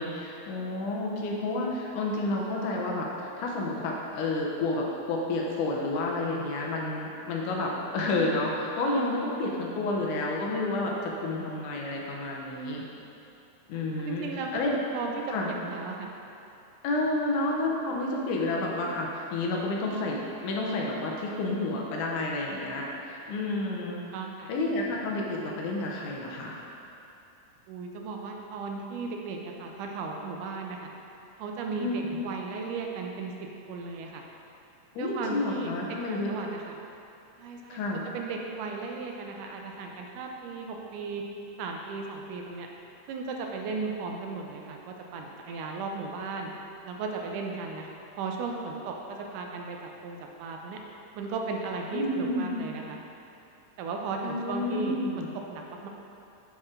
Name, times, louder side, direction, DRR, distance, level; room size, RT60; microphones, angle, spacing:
voice 1, 0.0-12.8 13.7-14.3 14.5-14.7 15.3-15.5 16.8-24.0 24.5-26.6 31.8-32.0 35.0-36.3 37.7-38.0 51.9-52.5 54.2-55.2, left 2 dB, 80° left, -2 dB, 2.3 m, -30 dB
voice 2, 13.7-15.1 15.5-16.1 24.1-24.5 27.7-30.9 31.4-33.3 33.7-34.2 35.0-35.7 36.1-36.8 37.4-37.8 38.1-41.2 41.6-42.7 43.1-46.5 46.8-49.8 50.0-50.8 51.2-53.0 53.8-55.9, right 4 dB, 85° right, 1 dB, 2.2 m, -36 dB
9.0 x 4.4 x 3.7 m, 2.7 s
omnidirectional pair, 3.6 m